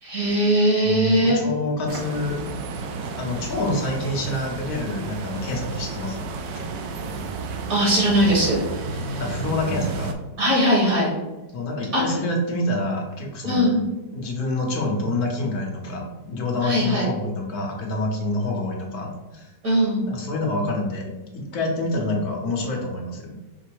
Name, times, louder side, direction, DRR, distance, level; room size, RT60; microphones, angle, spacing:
voice 1, 0.0-1.4 7.7-8.6 8.9-9.2 10.4-11.1 11.9-12.0 13.4-13.8 16.6-17.1 19.6-20.0, equal, 55° right, -4 dB, 1.6 m, -20 dB
voice 2, 0.8-2.4 3.2-6.3 9.2-10.1 11.5-13.6 14.1-19.5 20.1-23.3, left 1 dB, 65° left, 0 dB, 1.3 m, -27 dB
sound 1, 1.9-10.1, right 4 dB, 85° right, 1.2 m, -32 dB
5.2 x 2.0 x 4.5 m, 1.1 s
omnidirectional pair, 1.9 m